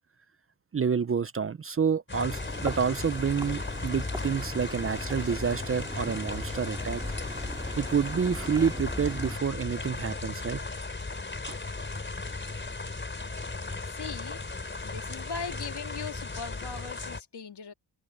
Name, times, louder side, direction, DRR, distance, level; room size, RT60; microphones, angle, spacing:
voice 1, 0.7-7.0 7.8-10.6 11.5-11.6, right 6 dB, 30° right, 0.6 m, -28 dB
sound 1, 2.1-17.2, left 3 dB, 25° left, 4.1 m, -36 dB
sound 2, 2.3-9.4, right 1 dB, 10° right, 2.7 m, -40 dB
voice 2, 13.9-14.4 14.8-17.7, left 6 dB, 65° left, 2.9 m, -39 dB
cardioid pair, 95°, 43 cm